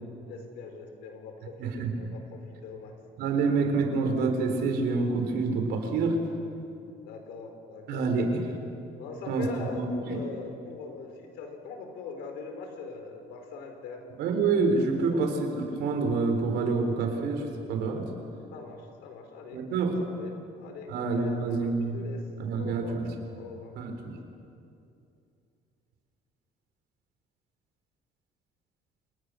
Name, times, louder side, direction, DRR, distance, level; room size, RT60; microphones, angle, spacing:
voice 1, 0.2-2.9 7.0-8.1 9.0-14.0 15.1-15.2 18.5-22.2 22.5-23.0 23.3-23.7, left 4 dB, 85° left, 4 dB, 4.2 m, -42 dB
voice 2, 1.6-1.9 3.2-6.2 7.9-8.4 9.3-9.4 9.7-10.2 14.2-17.4 17.7-18.0 19.5-19.9 20.9-22.0 22.4-23.1 23.8-24.1, right 4 dB, 85° right, 4 dB, 4.3 m, -27 dB
28.0 x 20.0 x 6.5 m, 2.6 s
cardioid pair, 110°, 17 cm